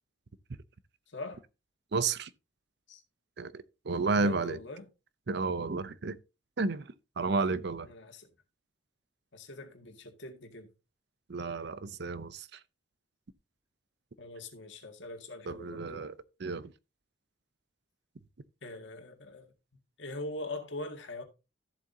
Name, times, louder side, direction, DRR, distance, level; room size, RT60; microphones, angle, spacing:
voice 1, 1.1-1.4 2.9-3.0 4.0-4.9 7.8-8.3 9.3-10.7 14.2-16.1 18.6-21.2, left 2 dB, 75° left, 2.0 m, -43 dB
voice 2, 1.9-2.3 3.4-4.6 5.3-6.2 6.6-7.9 11.3-12.6 15.5-16.7, right 3 dB, 60° right, 0.6 m, -32 dB
13.5 x 7.5 x 2.7 m
head